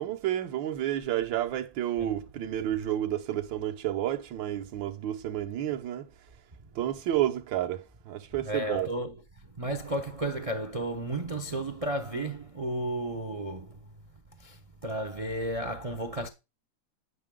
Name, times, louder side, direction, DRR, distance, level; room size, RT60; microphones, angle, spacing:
voice 1, 0.0-6.1 6.7-8.9, right 12 dB, 85° right, 1.6 m, -30 dB
voice 2, 8.4-9.1 9.6-13.8 14.4-16.3, right 1 dB, 65° right, 0.3 m, -33 dB
9.4 x 5.9 x 3.6 m
omnidirectional pair, 2.0 m